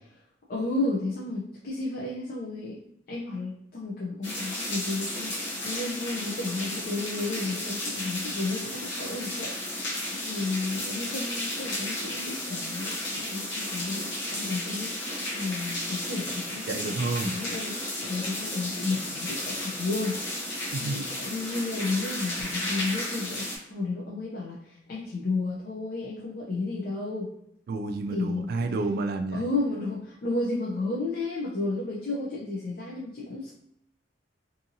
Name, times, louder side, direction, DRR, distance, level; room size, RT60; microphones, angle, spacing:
voice 1, 0.5-2.8 3.1-27.3 28.1-28.7 29.3-33.5, left 3 dB, 55° left, -5 dB, 0.5 m, -32 dB
sound 1, 4.2-23.6, left 1 dB, 80° left, 0.9 m, -33 dB
voice 2, 16.7-17.4 20.7-21.0 27.7-29.5, right 3 dB, 55° right, 7 dB, 0.3 m, -30 dB
2.7 x 2.6 x 2.6 m, 0.76 s
head